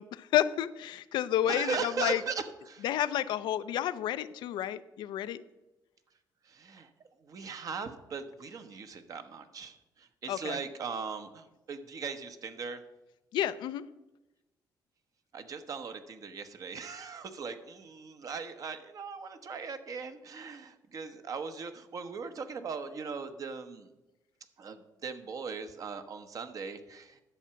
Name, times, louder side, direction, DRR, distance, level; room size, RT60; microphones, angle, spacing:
voice 1, 0.0-2.2 2.8-5.4 10.3-10.6 13.3-13.8, left 12 dB, 85° left, 13 dB, 0.5 m, -30 dB
voice 2, 1.5-2.8 6.4-6.9 7.2-12.8 15.3-23.9 24.6-27.2, right 5 dB, 50° right, 9 dB, 1.0 m, -39 dB
10.5 x 7.2 x 5.8 m, 1.0 s
cardioid pair, 110°, 8 cm